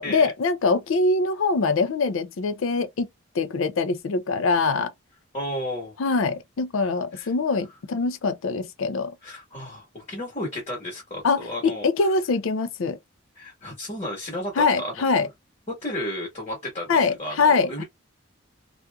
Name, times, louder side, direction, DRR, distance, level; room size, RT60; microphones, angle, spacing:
voice 1, 0.0-3.1 3.4-4.9 6.0-9.1 11.2-13.0 14.6-15.3 16.9-17.8, left 4 dB, 70° left, 0.4 m, -23 dB
voice 2, 5.3-5.9 7.1-7.3 9.2-12.1 13.3-15.0 15.7-17.8, left 1 dB, 30° left, 1.2 m, -33 dB
2.7 x 2.4 x 2.2 m
head